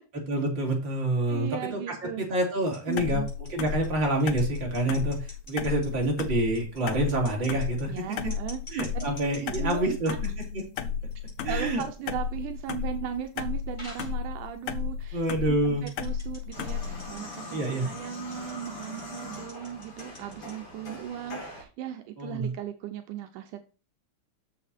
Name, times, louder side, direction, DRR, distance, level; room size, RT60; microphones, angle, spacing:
voice 1, 0.3-8.2 8.7-10.1 10.5-10.6 11.4-11.8 15.1-15.9 17.5-17.9 22.2-22.5, right 1 dB, 35° right, 0 dB, 3.7 m, -27 dB
voice 2, 1.3-2.2 2.9-3.3 7.9-8.6 8.9-10.2 11.5-15.2 15.5-17.6 17.9-23.7, right 10 dB, 80° right, 6 dB, 2.3 m, -37 dB
sound 1, 2.6-10.8 11.1-11.5 11.8-11.9 12.7-12.8 13.7-14.2 14.7-14.8 15.1-15.2 15.9-20.5, left 1 dB, 15° left, 4.6 m, -47 dB
sound 2, 3.0-17.1, left 7 dB, 75° left, 1.3 m, -34 dB
sound 3, 16.5-21.6, left 2 dB, 45° left, 3.9 m, -42 dB
7.1 x 7.0 x 4.3 m, 0.34 s
omnidirectional pair, 3.6 m